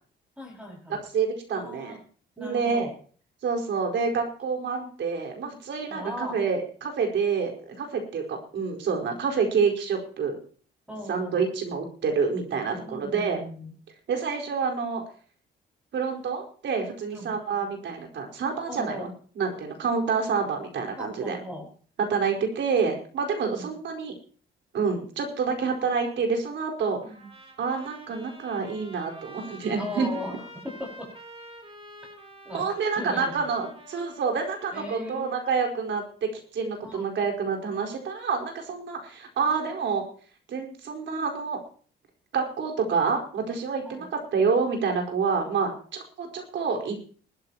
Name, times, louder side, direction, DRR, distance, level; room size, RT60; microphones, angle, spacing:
voice 1, 0.4-1.0 1.5-2.0 2.4-2.9 5.9-6.4 10.9-11.4 12.8-13.7 17.1-17.3 18.7-19.1 21.0-21.7 23.4-23.7 27.0-27.3 29.8-31.1 32.4-32.6 33.0-33.5 34.7-35.3 36.8-37.1 43.8-44.1, left 1 dB, 5° right, -1 dB, 5.9 m, -38 dB
voice 2, 0.9-2.0 2.4-2.9 3.4-10.4 11.1-13.4 14.1-15.0 15.9-19.1 19.3-21.4 22.0-24.1 24.7-27.0 27.6-30.1 32.5-40.0 40.5-41.6 42.3-47.0, right 5 dB, 70° right, 2 dB, 4.7 m, -28 dB
Trumpet, 27.0-35.7, right 1 dB, 30° right, 3.9 m, -48 dB
20.5 x 13.0 x 3.0 m, 0.43 s
cardioid pair, 90°, 20 cm